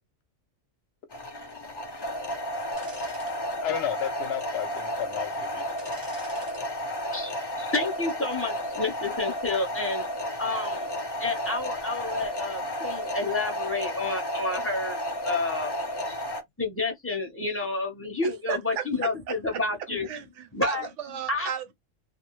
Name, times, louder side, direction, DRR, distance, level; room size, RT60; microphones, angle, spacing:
sound 1, 1.1-16.4, equal, 40° left, 0.3 m, -32 dB
sound 2, 2.7-3.3 3.8-3.9 5.8-6.6 7.0-7.2, right 1 dB, 20° right, 0.7 m, -48 dB
voice 1, 3.6-5.6, left 9 dB, 60° left, 0.8 m, -32 dB
voice 2, 7.1-10.0 10.4-10.9 11.2-15.0 15.2-15.7 16.1-16.2 16.6-20.1 20.5-20.9 21.3-21.5, left 3 dB, 15° left, 0.7 m, -30 dB
voice 3, 18.2-19.6 20.1-21.7, right 8 dB, 70° right, 0.9 m, -35 dB
2.5 x 2.0 x 3.0 m
omnidirectional pair, 1.4 m